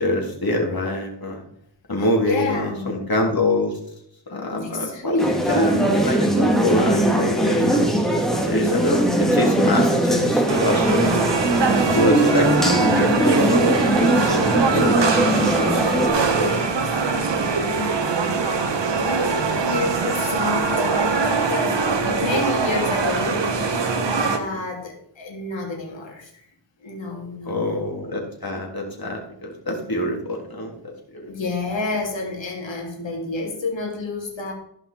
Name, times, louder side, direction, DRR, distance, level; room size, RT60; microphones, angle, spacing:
voice 1, 0.0-1.4 1.9-3.8 4.3-7.9 8.4-11.3 11.9-16.6 24.2-24.4 27.5-31.3, left 1 dB, 55° left, 0 dB, 3.4 m, -25 dB
voice 2, 2.0-2.9 4.6-5.0 8.5-8.8 17.6-18.4 18.9-26.4 26.8-27.9 31.3-34.5, left 3 dB, 85° left, 0 dB, 3.0 m, -30 dB
sound 1, 5.2-16.1, right 1 dB, ahead, 2.3 m, -20 dB
sound 2, 10.5-24.4, right 4 dB, 70° right, 1.4 m, -22 dB
15.0 x 5.8 x 4.5 m, 0.72 s
cardioid pair, 60°, 44 cm